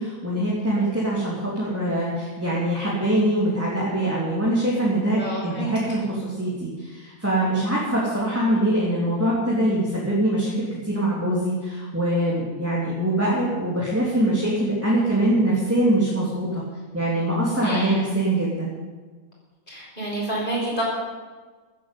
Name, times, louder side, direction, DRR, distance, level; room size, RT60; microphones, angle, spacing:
voice 1, 0.0-16.6 16.9-18.7, right 1 dB, 10° right, -7 dB, 3.5 m, -23 dB
voice 2, 5.1-5.7 17.6-18.1 19.7-20.8, right 1 dB, 35° left, -5 dB, 6.7 m, -29 dB
15.5 x 9.8 x 8.5 m, 1.4 s
omnidirectional pair, 1.5 m